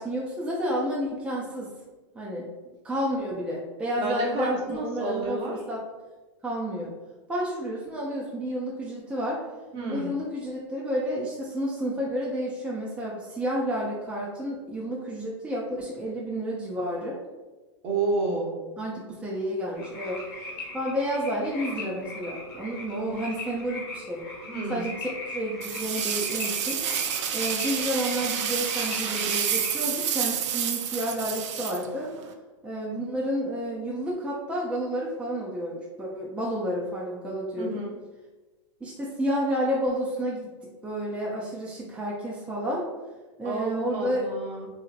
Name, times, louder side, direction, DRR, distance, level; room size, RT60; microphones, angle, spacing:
voice 1, 0.0-1.7 2.1-2.5 2.8-5.8 6.4-6.9 7.3-9.4 9.9-17.2 18.8-20.2 20.7-24.2 24.7-26.8 27.3-32.1 32.6-37.8 38.8-40.5 40.8-42.9 43.4-44.3, equal, 5° right, -5 dB, 0.5 m, -30 dB
voice 2, 4.0-5.6 9.7-10.1 17.8-18.6 24.4-24.9 37.6-38.0 43.4-44.7, right 3 dB, 35° right, -1 dB, 0.8 m, -30 dB
sound 1, 19.7-29.8, left 2 dB, 45° left, 1.1 m, -39 dB
sound 2, 25.6-32.3, right 8 dB, 70° right, 0.4 m, -29 dB
2.8 x 2.7 x 2.4 m, 1.2 s
hypercardioid pair, 115°, 16 cm